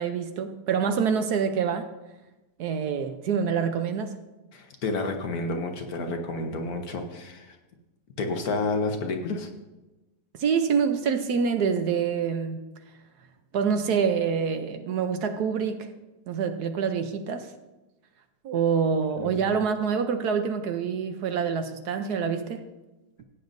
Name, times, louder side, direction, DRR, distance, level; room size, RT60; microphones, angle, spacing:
voice 1, 0.0-1.9 2.6-4.1 10.4-12.6 13.5-15.9 16.3-17.5 18.4-22.6, right 6 dB, 70° right, 8 dB, 1.2 m, -26 dB
voice 2, 4.5-7.6 8.2-9.5 19.2-19.5, left 3 dB, 60° left, 4 dB, 1.4 m, -30 dB
16.0 x 8.7 x 2.6 m, 1.1 s
omnidirectional pair, 1.9 m